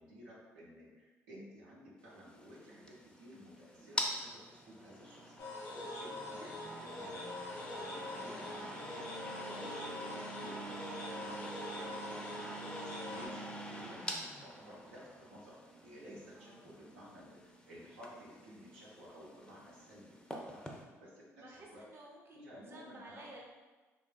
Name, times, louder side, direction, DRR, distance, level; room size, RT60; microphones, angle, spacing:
voice 1, 0.0-5.4 5.7-9.1 9.4-11.4 11.7-14.0 14.4-20.6 20.9-21.9 22.3-23.3, equal, 90° right, -6 dB, 0.7 m, -54 dB
sound 1, 2.1-20.8, equal, 10° left, 0.5 m, -46 dB
sound 2, 5.4-13.3, left 2 dB, 75° left, 0.6 m, -44 dB
voice 2, 16.3-16.8 21.4-23.4, right 1 dB, 35° right, -2 dB, 0.7 m, -54 dB
3.0 x 2.5 x 2.3 m, 1.2 s
hypercardioid pair, 55°, 7 cm